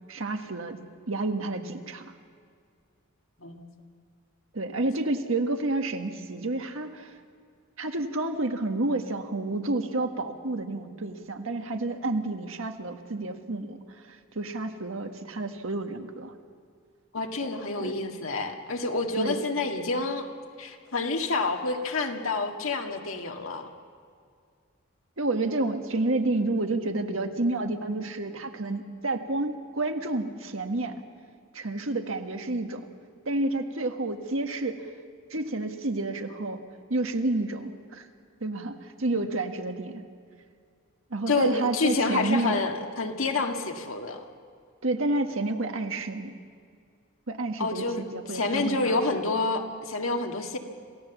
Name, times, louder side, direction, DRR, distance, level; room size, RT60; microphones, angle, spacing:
voice 1, 0.1-0.8 1.1-2.1 4.5-7.1 7.8-13.8 14.1-16.3 17.8-17.9 19.1-19.4 25.2-31.0 31.5-32.9 33.2-34.8 35.3-36.6 36.9-38.1 38.4-40.0 41.1-42.6 44.8-46.4 47.3-49.0, right 2 dB, 75° right, 5 dB, 1.5 m, -30 dB
voice 2, 3.4-3.7 17.1-20.3 20.6-23.7 39.1-39.3 41.3-44.2 47.6-48.0 48.3-50.6, left 3 dB, 80° left, 3 dB, 1.9 m, -28 dB
27.5 x 16.0 x 7.1 m, 2.2 s
head